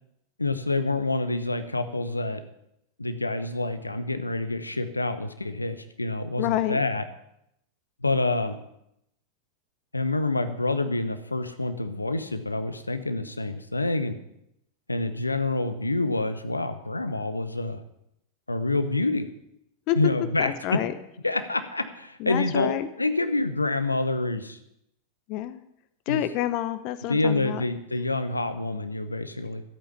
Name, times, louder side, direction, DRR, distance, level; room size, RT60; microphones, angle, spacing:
voice 1, 0.4-2.4 3.0-7.0 8.0-8.6 9.9-14.2 14.9-17.8 18.5-19.3 20.0-20.8 21.2-24.6 26.1-26.2 27.1-29.6, left 2 dB, 80° left, 11 dB, 0.9 m, -27 dB
voice 2, 6.4-6.8 19.9-20.0 20.4-20.9 22.2-22.9 25.3-25.6 26.1-27.6, left 13 dB, 45° left, 13 dB, 0.7 m, -28 dB
12.5 x 8.7 x 7.2 m, 0.79 s
figure-of-eight pair, 90°, 0 cm